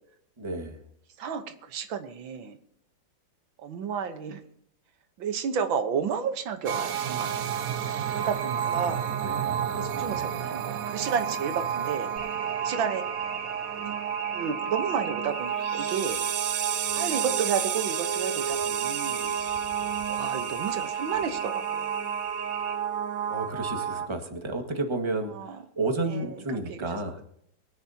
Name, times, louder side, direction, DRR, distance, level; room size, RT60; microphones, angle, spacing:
voice 1, 0.4-0.8 8.1-8.3 8.6-10.2 23.3-27.2, right 2 dB, 15° right, 4 dB, 1.6 m, -32 dB
voice 2, 1.2-2.6 3.6-4.4 5.2-7.4 8.1-9.1 10.0-12.1 12.6-13.0 13.8-14.0 14.3-16.2 17.0-19.4 20.1-21.9 25.3-25.6 26.1-26.4 26.7-26.8, right 6 dB, 85° right, 8 dB, 1.9 m, -31 dB
sound 1, 6.7-24.1, right 8 dB, 60° right, 0.9 m, -30 dB
sound 2, 12.2-22.7, right 4 dB, 45° right, 4.0 m, -40 dB
23.0 x 10.5 x 2.8 m, 0.69 s
omnidirectional pair, 2.1 m